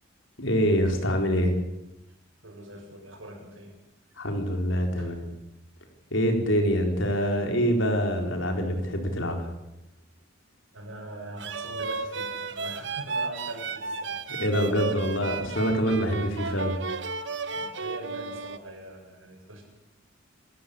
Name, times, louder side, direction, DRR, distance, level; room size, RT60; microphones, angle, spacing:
voice 1, 0.4-1.5 4.2-5.3 6.1-9.5 14.4-16.7, equal, 70° left, 3 dB, 4.4 m, -25 dB
voice 2, 2.4-3.8 5.0-5.1 10.7-14.2 15.0-15.2 17.5-19.6, right 1 dB, 80° right, 2 dB, 7.3 m, -42 dB
sound 1, 11.4-18.6, right 4 dB, 60° right, 1.2 m, -33 dB
27.5 x 13.5 x 8.6 m, 0.92 s
head